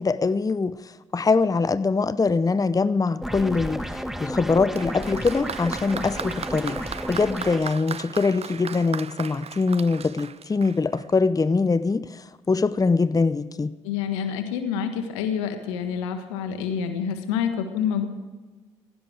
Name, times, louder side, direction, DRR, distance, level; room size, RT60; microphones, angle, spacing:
voice 1, 0.0-6.8 7.1-13.7, left 4 dB, 25° left, 15 dB, 0.7 m, -23 dB
sound 1, 3.2-7.6, equal, ahead, 1.7 m, -32 dB
Applause, 4.7-11.2, right 7 dB, 45° right, 0.7 m, -37 dB
voice 2, 13.8-18.1, left 7 dB, 85° left, 7 dB, 1.5 m, -27 dB
17.0 x 16.0 x 4.8 m, 1.3 s
hypercardioid pair, 45°, 15 cm